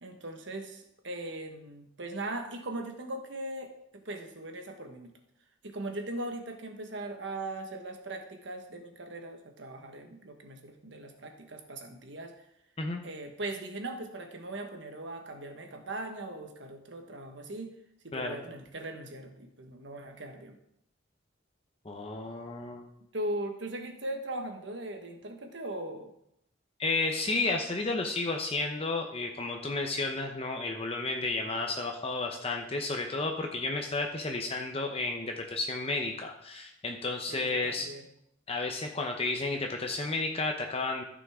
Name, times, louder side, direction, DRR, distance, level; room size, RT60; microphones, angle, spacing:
voice 1, 0.0-5.1 5.6-12.4 13.0-17.7 18.0-20.6 23.1-26.1 33.3-33.6 37.3-38.0, right 1 dB, 65° right, 5 dB, 1.4 m, -39 dB
voice 2, 21.8-22.9 26.8-37.9 38.5-41.0, left 3 dB, 30° left, 2 dB, 0.8 m, -32 dB
14.5 x 6.2 x 3.7 m, 0.77 s
head